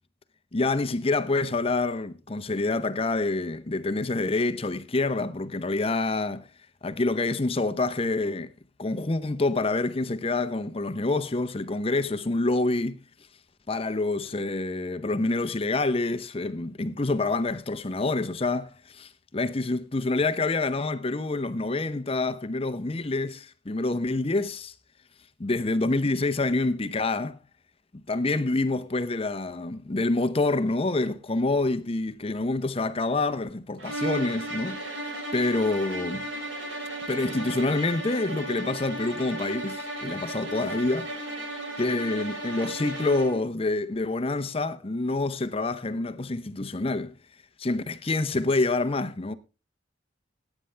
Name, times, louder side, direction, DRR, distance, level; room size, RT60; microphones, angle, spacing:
voice 1, 0.5-6.5 6.8-8.5 8.8-13.0 13.7-24.7 25.4-27.4 27.9-34.8 35.3-36.3 37.1-41.1 41.8-47.1 47.6-49.3, left 2 dB, 30° left, 0.7 m, -27 dB
sound 1, 33.8-43.5, right 2 dB, 85° right, 3.3 m, -35 dB
17.0 x 9.1 x 3.3 m
head